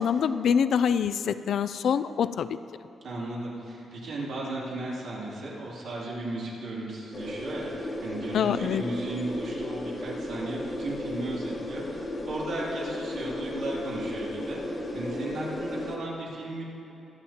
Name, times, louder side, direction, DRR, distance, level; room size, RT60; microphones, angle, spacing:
voice 1, 0.0-2.6 8.3-8.8, left 7 dB, 55° left, 14 dB, 0.3 m, -25 dB
voice 2, 3.0-16.6, right 2 dB, 70° right, -5 dB, 2.7 m, -35 dB
sound 1, 7.1-16.0, left 1 dB, 20° left, 1.2 m, -35 dB
24.5 x 8.9 x 2.9 m, 2.8 s
wide cardioid pair, 180°, 0 cm